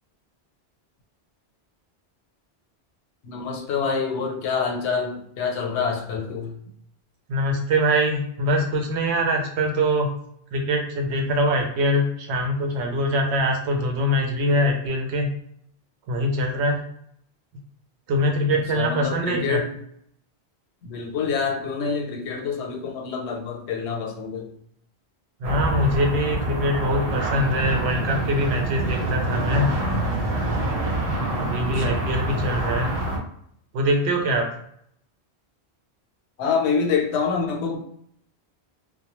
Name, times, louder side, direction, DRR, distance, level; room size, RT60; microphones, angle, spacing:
voice 1, 3.2-6.6 18.7-19.7 20.8-24.5 31.6-32.0 36.4-37.8, left 5 dB, 80° left, 1 dB, 0.9 m, -26 dB
voice 2, 7.3-10.1 10.5-15.3 16.1-16.8 18.1-19.6 25.4-29.7 30.6-31.0 31.4-32.9 33.7-34.5, equal, 80° right, 2 dB, 0.9 m, -23 dB
sound 1, 25.4-33.2, right 1 dB, 45° right, 0.5 m, -26 dB
2.2 x 2.1 x 2.9 m, 0.68 s
omnidirectional pair, 1.1 m